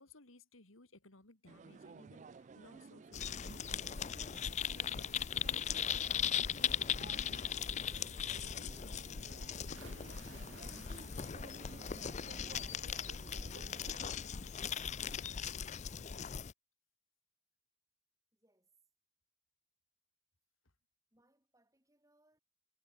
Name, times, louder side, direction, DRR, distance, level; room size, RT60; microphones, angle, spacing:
voice 1, 0.0-16.4 20.6-20.7, left 3 dB, 80° left, 2.8 m, -63 dB
sound 1, 1.5-14.1, right 4 dB, 35° right, 0.3 m, -55 dB
sound 2, 3.1-16.5, left 8 dB, 35° left, 0.5 m, -39 dB
sound 3, 9.7-11.7 12.1-12.6 14.0-14.1 14.5-14.6, right 6 dB, 70° right, 1.6 m, -59 dB
voice 2, 18.3-18.7 21.1-22.4, right 1 dB, 15° right, 7.5 m, -74 dB
head